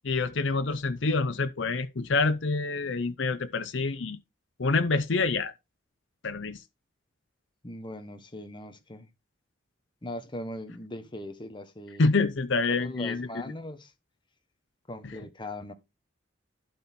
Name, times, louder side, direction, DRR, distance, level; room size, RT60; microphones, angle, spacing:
voice 1, 0.0-4.2 4.6-5.5 6.2-6.6 12.0-13.3, left 3 dB, 85° left, 0.7 m, -27 dB
voice 2, 7.6-9.1 10.0-12.2 12.7-13.9 14.9-15.7, left 1 dB, 25° left, 1.2 m, -40 dB
11.5 x 4.3 x 4.3 m
head